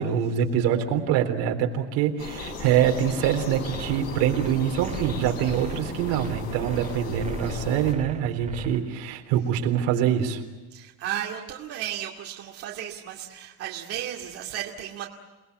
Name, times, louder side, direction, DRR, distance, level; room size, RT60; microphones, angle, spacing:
voice 1, 0.0-10.4, right 9 dB, 80° right, 3 dB, 3.9 m, -24 dB
sound 1, 2.2-7.9, left 3 dB, 55° left, 7.1 m, -36 dB
sound 2, 3.6-8.8, right 7 dB, 25° right, 2.1 m, -39 dB
voice 2, 10.7-15.1, right 11 dB, 50° right, 0 dB, 2.3 m, -34 dB
29.0 x 20.0 x 8.3 m, 1.2 s
cardioid pair, 155°, 30 cm